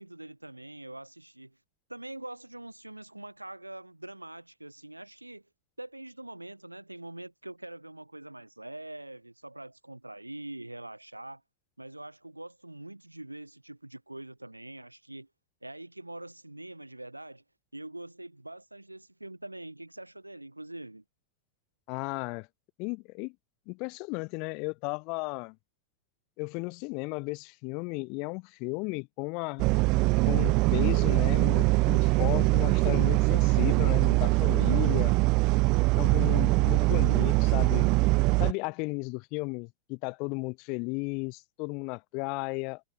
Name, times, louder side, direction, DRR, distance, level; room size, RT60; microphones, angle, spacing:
voice 1, 0.0-1.6 1.9-5.4 5.8-11.4 11.8-15.3 15.6-17.4 17.7-21.0, right 1 dB, 85° right, 2.4 m, -44 dB
voice 2, 21.9-22.5 22.8-23.3 23.7-25.6 26.4-29.6 30.2-35.2 35.9-38.0 38.4-42.8, left 31 dB, 45° left, 2.5 m, -34 dB
sound 1, 29.6-38.5, right 25 dB, 40° right, 0.3 m, -23 dB
figure-of-eight pair, 90°, 0 cm